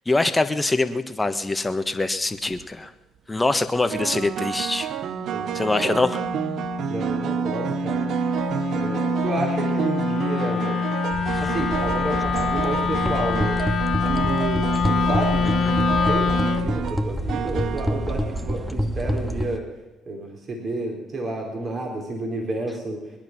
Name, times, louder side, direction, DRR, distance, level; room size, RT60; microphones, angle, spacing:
voice 1, 0.1-2.9 3.3-4.9 5.5-6.2 15.4-15.7, left 2 dB, 15° left, 9 dB, 1.3 m, -24 dB
sound 1, 2.3-2.6 3.9-18.7, right 9 dB, 65° right, 0.7 m, -29 dB
Wind instrument woodwind instrument, 5.2-16.7, left 7 dB, 45° left, 1.7 m, -26 dB
voice 2, 5.3-5.9 6.9-8.1 8.7-10.8 11.4-13.6 14.1-19.7 20.1-23.0, right 2 dB, 45° right, 1 dB, 3.8 m, -30 dB
sound 2, 11.1-19.6, equal, 5° right, 1.1 m, -28 dB
22.5 x 10.5 x 6.0 m, 1.0 s
supercardioid pair, 70°, 0 cm